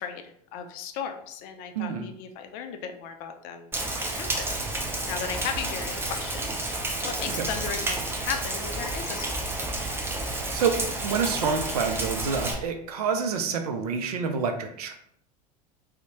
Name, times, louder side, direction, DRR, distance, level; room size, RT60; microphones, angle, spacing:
voice 1, 0.0-4.5 5.1-6.5 7.0-9.4, left 7 dB, 45° left, 7 dB, 0.4 m, -36 dB
voice 2, 1.8-2.1 7.4-7.5 10.5-14.9, right 5 dB, 70° right, 6 dB, 0.4 m, -28 dB
Rain, 3.7-12.5, right 2 dB, 10° right, 0.5 m, -30 dB
2.7 x 2.0 x 2.7 m, 0.69 s
figure-of-eight pair, 80°, 20 cm